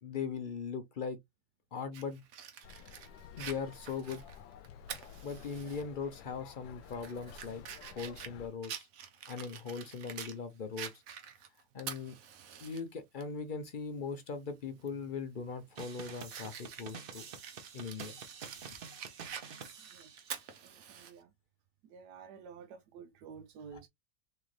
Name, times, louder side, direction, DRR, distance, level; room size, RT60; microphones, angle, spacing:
voice 1, 0.0-1.2 1.7-2.2 3.4-4.2 5.2-8.9 9.3-10.9 11.7-12.2 12.6-17.2 17.7-18.2 23.7-23.8, left 5 dB, 55° left, 0.5 m, -40 dB
Fire, 1.9-5.8 6.2-6.3 6.8-10.4 10.8-12.8 13.2-13.3 14.8-15.0 15.5-21.1, right 8 dB, 65° right, 1.1 m, -47 dB
sound 1, 2.6-8.5, left 8 dB, 90° left, 1.2 m, -52 dB
sound 2, 15.8-20.7, right 6 dB, 50° right, 0.7 m, -48 dB
voice 2, 20.7-21.3 21.9-23.9, right 6 dB, 90° right, 1.2 m, -51 dB
3.8 x 3.3 x 3.1 m
omnidirectional pair, 1.7 m